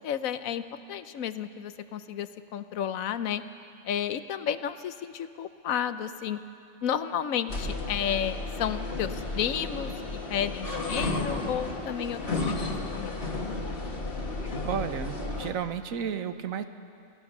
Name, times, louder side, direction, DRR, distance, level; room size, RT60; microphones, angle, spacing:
voice 1, 0.0-3.4 3.8-6.4 6.8-9.9 10.3-13.2, left 9 dB, 90° left, 12 dB, 1.2 m, -32 dB
sound 1, 7.5-15.5, left 2 dB, 45° left, 1.9 m, -33 dB
voice 2, 14.6-16.6, right 7 dB, 85° right, 10 dB, 1.3 m, -32 dB
27.5 x 15.0 x 6.6 m, 2.5 s
omnidirectional pair, 1.4 m